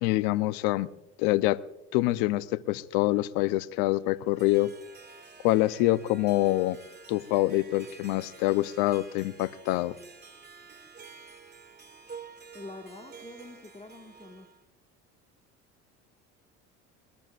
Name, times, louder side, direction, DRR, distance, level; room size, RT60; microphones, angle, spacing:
voice 1, 0.0-0.9 1.2-1.6 1.9-4.7 5.4-6.8 7.1-10.0, left 17 dB, 75° left, 0.8 m, -25 dB
Harp, 4.1-14.6, right 5 dB, 30° right, 2.6 m, -50 dB
voice 2, 12.5-14.5, left 3 dB, 15° left, 1.9 m, -46 dB
21.5 x 21.0 x 2.5 m
hypercardioid pair, 75°, 35 cm